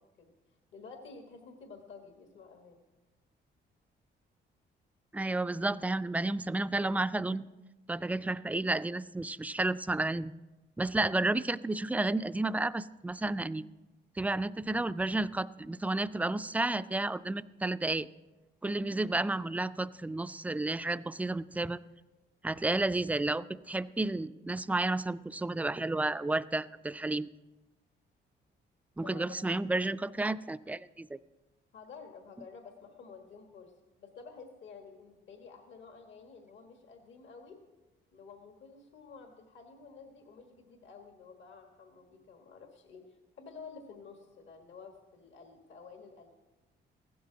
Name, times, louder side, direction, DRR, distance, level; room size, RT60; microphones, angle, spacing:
voice 1, 0.7-2.8 29.0-29.4 31.7-33.7 34.0-37.6 38.1-46.3, left 5 dB, 70° left, 4 dB, 1.6 m, -51 dB
voice 2, 5.1-7.4 7.9-10.3 10.8-13.6 14.2-18.1 18.6-21.8 22.4-27.3 29.0-31.2, right 2 dB, 10° right, 14 dB, 0.3 m, -31 dB
15.5 x 12.5 x 3.9 m, 1.1 s
cardioid pair, 90°, 20 cm